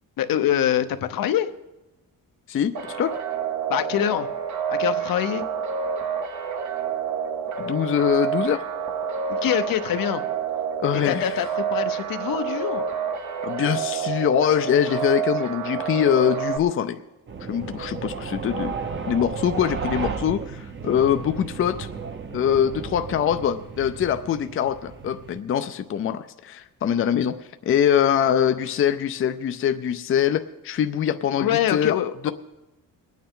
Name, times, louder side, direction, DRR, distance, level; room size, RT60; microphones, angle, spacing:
voice 1, 0.2-1.5 3.7-4.3 4.7-5.4 9.3-10.2 10.9-12.8 31.4-32.3, left 10 dB, 75° left, 10 dB, 0.8 m, -24 dB
voice 2, 2.5-3.1 7.6-8.6 10.8-11.4 13.4-17.0 17.5-18.7 19.1-21.9 22.3-27.3 27.7-32.0 32.2-32.3, left 9 dB, 40° left, 9 dB, 0.5 m, -23 dB
sound 1, 2.7-16.6, right 7 dB, 55° right, 1.0 m, -28 dB
sound 2, 17.3-25.4, right 5 dB, 35° right, 0.8 m, -34 dB
22.5 x 9.3 x 3.7 m, 0.99 s
cardioid pair, 155°, 34 cm